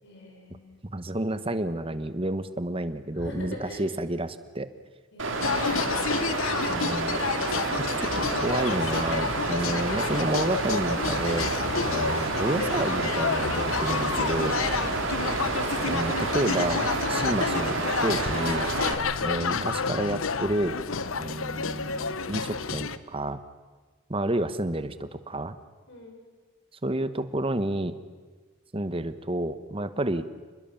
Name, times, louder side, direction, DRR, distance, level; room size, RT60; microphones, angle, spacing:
voice 1, 0.0-0.8 3.1-3.9 5.1-6.2 14.8-15.1 25.9-26.2, left 1 dB, 60° left, 1 dB, 7.1 m, -42 dB
voice 2, 0.9-4.7 6.7-7.2 8.0-11.5 11.8-14.6 15.9-16.8 17.1-18.7 19.2-20.8 21.1-23.4 24.1-25.6 26.8-28.0 28.7-30.3, right 1 dB, 25° right, 11 dB, 1.1 m, -30 dB
Water, 5.2-18.9, right 3 dB, 60° right, 2.8 m, -29 dB
sound 1, 5.4-23.0, left 5 dB, 75° left, 0.9 m, -30 dB
28.0 x 20.5 x 7.2 m, 1.4 s
head